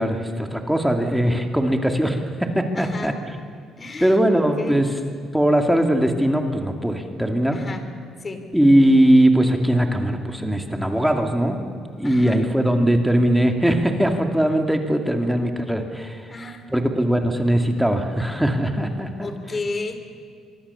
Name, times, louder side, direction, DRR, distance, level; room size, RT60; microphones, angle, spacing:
voice 1, 0.0-3.1 4.0-4.9 5.3-7.6 8.5-11.6 12.0-16.2 16.7-19.3, right 1 dB, 5° right, 4 dB, 2.4 m, -20 dB
voice 2, 2.7-3.2 3.8-4.8 7.5-7.8 8.2-8.4 12.0-12.4 16.3-16.7 19.2-20.0, left 3 dB, 30° left, 8 dB, 3.1 m, -33 dB
24.0 x 23.5 x 7.1 m, 2.2 s
cardioid pair, 90°, 0 cm